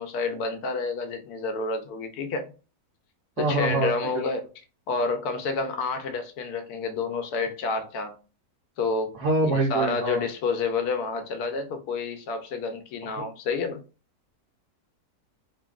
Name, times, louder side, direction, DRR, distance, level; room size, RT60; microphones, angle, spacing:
voice 1, 0.0-2.5 3.4-4.4 4.9-8.2 8.8-9.1 9.4-13.8, left 4 dB, 80° left, 1.1 m, -29 dB
voice 2, 3.4-4.2 9.2-10.2, right 2 dB, 90° right, 1.3 m, -25 dB
2.9 x 2.6 x 2.3 m
omnidirectional pair, 1.6 m